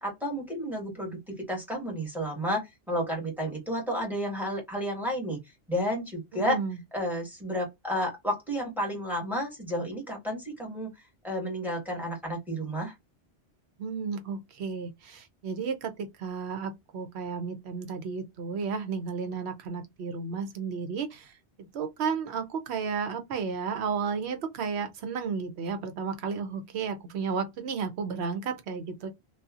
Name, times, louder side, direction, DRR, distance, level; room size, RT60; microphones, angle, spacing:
voice 1, 0.0-5.4 5.7-6.6 6.9-10.9 11.2-12.9, equal, ahead, 1.4 m, -31 dB
voice 2, 6.3-6.8 13.8-21.3 21.6-29.1, right 5 dB, 75° right, 0.9 m, -33 dB
2.7 x 2.3 x 2.4 m
omnidirectional pair, 1.1 m